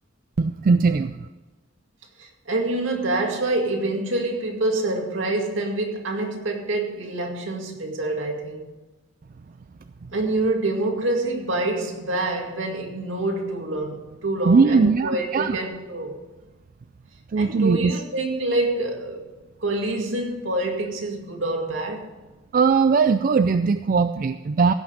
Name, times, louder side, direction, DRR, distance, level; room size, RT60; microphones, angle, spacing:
voice 1, 0.4-1.3 14.4-15.6 17.3-17.9 22.5-24.7, right 4 dB, 45° right, 0.4 m, -19 dB
voice 2, 2.2-8.7 10.1-16.2 17.4-19.2 19.6-22.1, right 2 dB, 75° right, 2.1 m, -26 dB
16.0 x 6.0 x 6.6 m
head